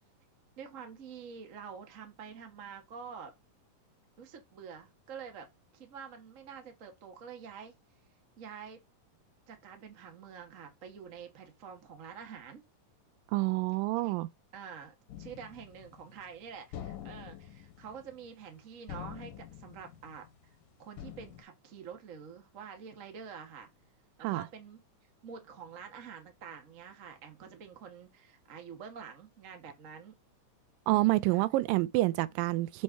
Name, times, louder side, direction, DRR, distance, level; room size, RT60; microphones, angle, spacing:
voice 1, 0.6-3.3 4.2-5.5 5.7-7.7 8.4-8.8 9.5-12.6 14.0-14.2 14.5-20.3 20.8-23.7 24.3-24.8 25.2-30.1 31.3-31.4, right 6 dB, 60° right, 0.8 m, -47 dB
voice 2, 13.3-14.3 24.2-24.4 30.9-32.8, right 19 dB, 90° right, 2.3 m, -28 dB
sound 1, 15.1-16.3 16.7-18.6 18.9-20.6 21.0-21.4, left 10 dB, 80° left, 2.5 m, -46 dB
6.5 x 4.2 x 4.5 m
omnidirectional pair, 3.9 m